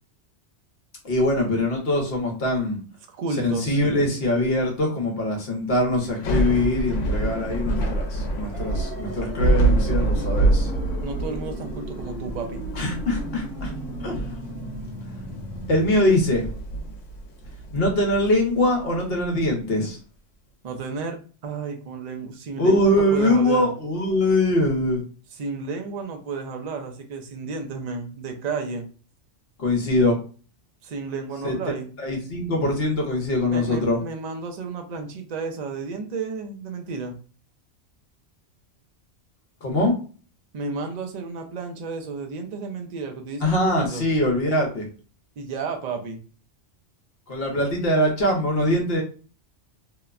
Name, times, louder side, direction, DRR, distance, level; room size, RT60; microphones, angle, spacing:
voice 1, 1.0-2.8 3.4-10.7 12.8-13.7 14.0-14.2 15.7-16.5 17.7-20.0 22.6-25.0 29.6-30.2 31.4-31.5 32.0-34.0 39.6-40.0 43.4-44.9 47.3-49.0, left 1 dB, 55° left, 1 dB, 1.0 m, -22 dB
voice 2, 3.1-3.8 11.0-12.6 20.6-23.7 25.3-28.8 30.8-31.9 33.5-37.2 40.5-44.0 45.4-46.2, right 4 dB, 55° right, 4 dB, 0.5 m, -32 dB
Thunder / Rain, 6.1-19.2, right 2 dB, 85° left, 1.0 m, -26 dB
sound 1, 8.5-15.9, equal, 10° right, 0.8 m, -37 dB
2.8 x 2.1 x 2.3 m, 0.38 s
omnidirectional pair, 1.2 m